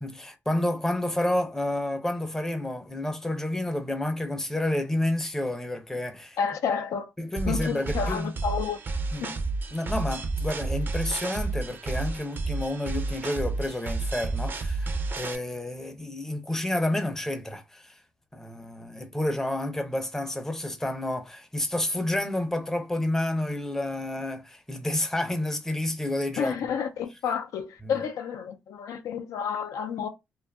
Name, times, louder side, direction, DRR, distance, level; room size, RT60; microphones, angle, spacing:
voice 1, 0.0-6.4 7.2-8.3 9.1-9.3 9.7-18.0 18.3-26.5, left 1 dB, 10° left, 0.5 m, -30 dB
voice 2, 6.4-7.1 7.5-8.8 9.2-9.4 26.4-30.1, left 7 dB, 85° left, 0.4 m, -30 dB
sound 1, 7.4-15.4, right 3 dB, 40° right, 0.5 m, -31 dB
2.7 x 2.3 x 2.2 m
cardioid pair, 85°, 5 cm